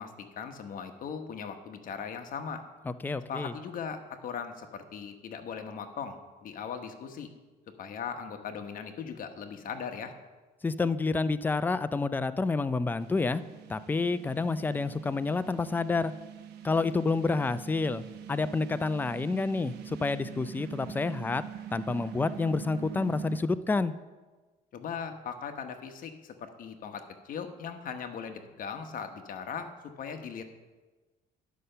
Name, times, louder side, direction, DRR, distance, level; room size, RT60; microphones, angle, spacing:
voice 1, 0.0-2.6 3.3-7.3 7.8-10.1 24.7-29.7 30.0-30.4, left 6 dB, 55° left, 6 dB, 1.1 m, -39 dB
voice 2, 2.9-3.5 10.6-13.4 13.7-16.1 16.6-21.4 21.7-23.9, left 3 dB, 10° left, 13 dB, 0.4 m, -29 dB
sound 1, 13.0-23.4, right 10 dB, 75° right, 0.8 m, -44 dB
11.0 x 5.6 x 6.7 m, 1.3 s
cardioid pair, 110°, 17 cm